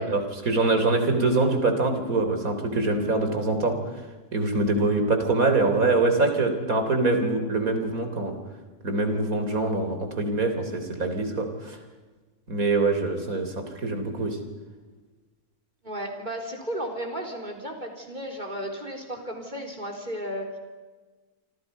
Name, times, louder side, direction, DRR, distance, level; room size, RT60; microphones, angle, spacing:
voice 1, 0.0-3.8 4.3-8.3 8.8-11.8 12.5-14.4, right 3 dB, 65° right, 6 dB, 4.0 m, -24 dB
voice 2, 15.8-20.5, equal, 30° right, 3 dB, 4.2 m, -34 dB
28.0 x 26.5 x 5.5 m, 1.3 s
omnidirectional pair, 1.6 m